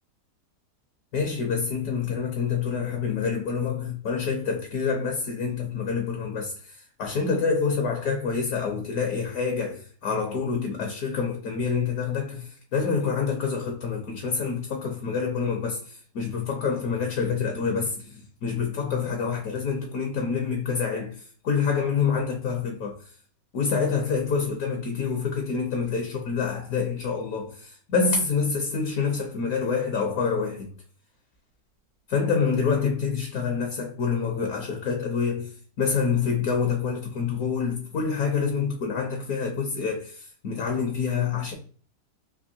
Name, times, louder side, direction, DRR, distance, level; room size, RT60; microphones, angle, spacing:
voice 1, 1.1-23.0 23.5-30.7 32.1-41.5, left 5 dB, 65° left, 1.0 m, -27 dB
3.5 x 2.6 x 2.7 m
omnidirectional pair, 1.9 m